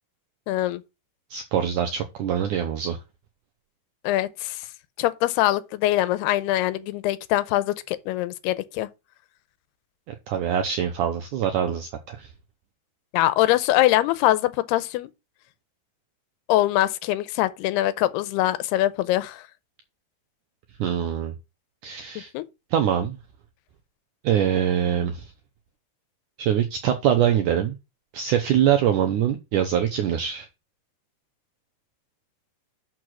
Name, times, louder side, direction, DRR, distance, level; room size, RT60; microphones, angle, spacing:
voice 1, 0.5-0.8 4.0-4.7 5.0-8.9 13.1-15.1 16.5-19.4 22.3-22.4, left 15 dB, 85° left, 2.7 m, -23 dB
voice 2, 1.3-3.0 10.3-12.3 20.8-21.3 21.8-22.3 22.7-23.2 24.2-25.3 26.4-27.8 28.1-30.5, right 9 dB, 85° right, 1.8 m, -23 dB
6.4 x 6.0 x 6.1 m
omnidirectional pair, 4.6 m